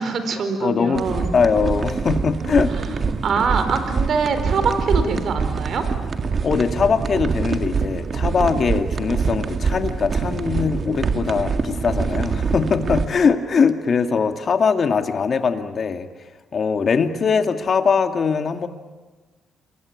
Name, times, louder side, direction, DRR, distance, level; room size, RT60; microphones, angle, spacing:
voice 1, 0.0-1.3 3.2-5.9, right 5 dB, 60° right, 9 dB, 4.5 m, -23 dB
voice 2, 0.6-1.0 1.3-3.1 6.4-16.1 16.5-18.7, left 5 dB, 45° left, 7 dB, 2.3 m, -21 dB
sound 1, 0.9-13.1, right 5 dB, 45° right, 1.9 m, -24 dB
28.5 x 22.0 x 8.7 m, 1.3 s
cardioid pair, 90°, 0 cm